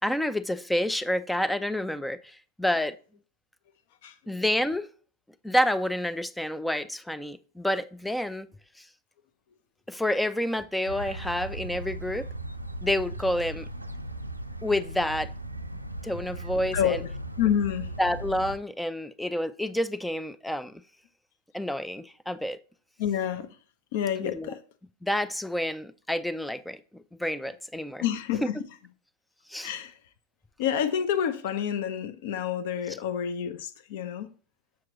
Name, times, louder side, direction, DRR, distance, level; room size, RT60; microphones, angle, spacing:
voice 1, 0.0-3.0 4.3-4.9 5.4-8.5 9.9-12.3 12.8-13.7 14.6-15.3 16.0-17.0 18.0-20.8 21.5-22.6 24.2-24.5 25.0-26.8 27.2-28.0 29.5-29.7 32.9-33.0, left 1 dB, 5° left, 0.4 m, -29 dB
voice 2, 4.0-4.4 16.7-17.0 17.4-17.9 23.0-23.5 23.9-24.6 28.0-28.6 29.6-30.0 30.6-34.3, left 9 dB, 50° left, 0.8 m, -28 dB
sound 1, 10.9-18.6, right 1 dB, 85° right, 0.5 m, -37 dB
7.3 x 6.4 x 3.0 m
figure-of-eight pair, 90°, 0 cm